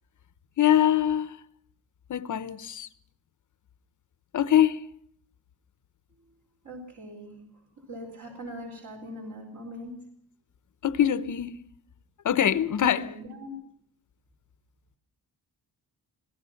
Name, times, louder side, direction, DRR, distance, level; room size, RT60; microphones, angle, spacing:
voice 1, 0.6-1.4 2.1-2.9 4.3-4.9 10.8-11.5 12.2-13.1, left 10 dB, 50° left, 0.9 m, -23 dB
voice 2, 6.6-7.4 7.8-10.0 12.8-13.5, equal, 50° right, 4.4 m, -41 dB
26.0 x 17.5 x 5.9 m
wide cardioid pair, 160°, 39 cm